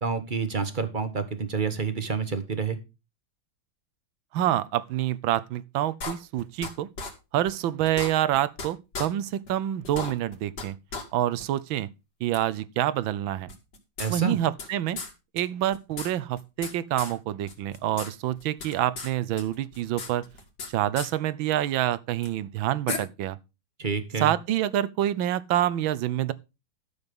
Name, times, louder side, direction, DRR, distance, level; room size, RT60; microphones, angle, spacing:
voice 1, 0.0-2.8 14.0-14.4 23.8-24.3, right 5 dB, 30° right, 1.2 m, -28 dB
voice 2, 4.3-6.9 7.3-10.7 11.1-11.9 12.2-13.5 14.1-15.0 15.3-20.2 20.7-23.4 24.2-26.3, right 12 dB, 75° right, 1.5 m, -27 dB
sound 1, 6.0-6.7 7.0-7.1 7.5-7.6 7.9-8.7 8.9-9.1 9.5-9.6 9.8-10.7 10.9-11.0 11.4-11.5 12.3-12.4 13.5-14.7 15.0-15.1 15.4-15.5 15.7-16.7 17.0-17.1 17.5-18.1 18.4-19.1 19.4-20.7 21.0-21.1 22.2-22.3 22.9-23.0, left 4 dB, 55° left, 2.6 m, -35 dB
12.5 x 7.0 x 5.3 m
omnidirectional pair, 2.2 m